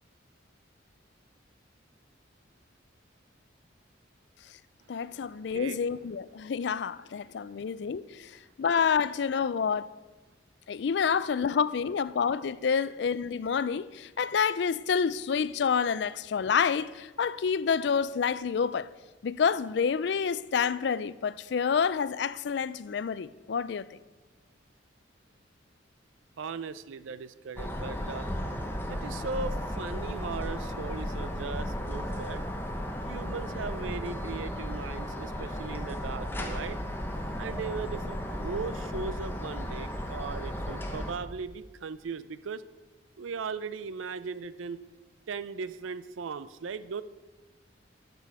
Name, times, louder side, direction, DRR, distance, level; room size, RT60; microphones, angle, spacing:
voice 1, 4.9-9.9 10.7-18.9 19.2-24.0, left 6 dB, 60° left, 0.4 m, -28 dB
voice 2, 5.4-5.8 7.5-7.6 26.4-28.3 28.9-32.4 33.0-36.8 37.4-42.6 43.2-44.9 45.3-47.0, right 5 dB, 90° right, 0.5 m, -38 dB
sound 1, 27.6-41.1, equal, 10° left, 0.8 m, -35 dB
12.5 x 6.8 x 4.8 m
head